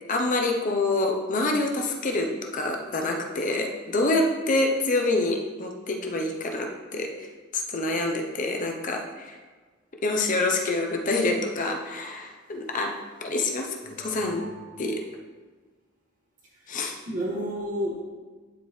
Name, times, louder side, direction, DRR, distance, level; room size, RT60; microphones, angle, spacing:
voice 1, 0.1-7.3 7.5-9.4 10.0-12.9 13.2-14.5 14.8-15.0 16.7-17.0, left 2 dB, 40° left, 2 dB, 0.7 m, -26 dB
voice 2, 14.0-14.7 17.1-18.0, equal, 45° right, -4 dB, 2.0 m, -32 dB
11.0 x 4.6 x 3.2 m, 1.4 s
head